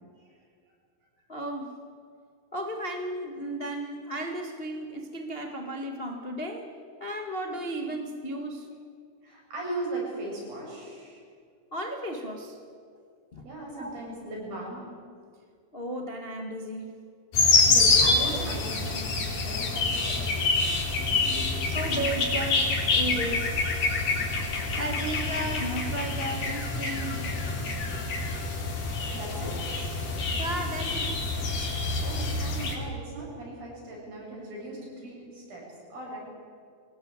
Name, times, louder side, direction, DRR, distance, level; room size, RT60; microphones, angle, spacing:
voice 1, 1.3-1.8 2.5-6.7 7.0-8.7 11.7-12.6 13.3-13.4 13.8-13.9 15.7-16.9 21.7-23.6 24.8-27.3 30.4-31.3, right 1 dB, 80° left, 3 dB, 0.5 m, -34 dB
voice 2, 9.2-11.2 13.4-14.8 17.7-20.8 29.1-29.6 32.0-36.2, right 2 dB, 60° right, -2 dB, 9.2 m, -38 dB
sound 1, 17.3-32.8, left 3 dB, 55° left, 5.1 m, -26 dB
23.5 x 19.0 x 8.9 m, 2.2 s
omnidirectional pair, 4.6 m